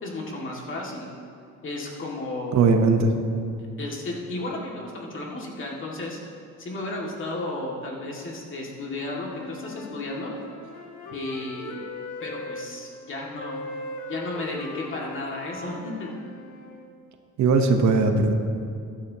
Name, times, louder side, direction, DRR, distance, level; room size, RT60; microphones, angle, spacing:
voice 1, 0.0-1.1 1.6-2.8 3.8-6.2 6.6-10.3 11.1-11.8 12.2-13.6 14.1-16.1, left 2 dB, 45° left, -2 dB, 2.2 m, -33 dB
voice 2, 2.5-3.1 17.4-18.3, right 4 dB, 70° right, 5 dB, 1.0 m, -19 dB
Wind instrument woodwind instrument, 8.8-12.7 13.4-16.9, left 2 dB, 80° left, 1.2 m, -39 dB
15.5 x 11.5 x 2.9 m, 2.3 s
cardioid pair, 125°, 29 cm